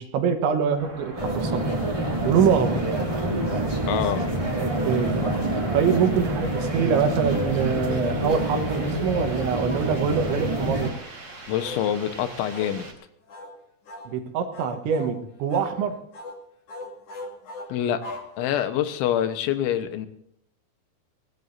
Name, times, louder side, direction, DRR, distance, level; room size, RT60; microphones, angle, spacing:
voice 1, 0.0-1.8 2.3-2.9 4.6-5.3 5.7-10.9 14.1-16.0, right 7 dB, 75° right, 6 dB, 3.6 m, -24 dB
sound 1, 0.8-12.9, right 2 dB, 30° right, 4.1 m, -42 dB
sound 2, 1.2-1.9 2.9-3.9 4.4-5.5 6.5-6.8 7.3-7.6 8.2-8.5 8.8-9.0 9.4-9.6 10.3-10.5 10.8-11.0 11.6-11.9 12.5-12.8 13.3-13.5 13.9-14.1 14.5-15.2 15.5-15.8 16.1-16.4 16.7-18.8, left 2 dB, 45° left, 2.2 m, -38 dB
sound 3, 1.2-10.9, right 1 dB, 15° right, 1.2 m, -27 dB
voice 2, 3.9-4.2 11.5-12.9 17.7-18.0 18.4-20.1, left 10 dB, 80° left, 9 dB, 3.5 m, -25 dB
23.0 x 18.0 x 2.7 m, 0.69 s
omnidirectional pair, 5.4 m